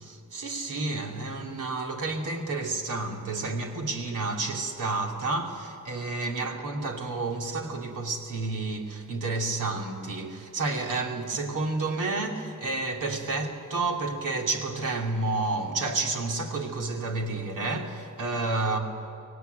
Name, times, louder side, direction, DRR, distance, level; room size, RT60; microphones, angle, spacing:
voice 1, 0.0-18.8, right 3 dB, 90° right, 2.8 m, -30 dB
24.5 x 18.0 x 9.4 m
cardioid pair, 95°, 31 cm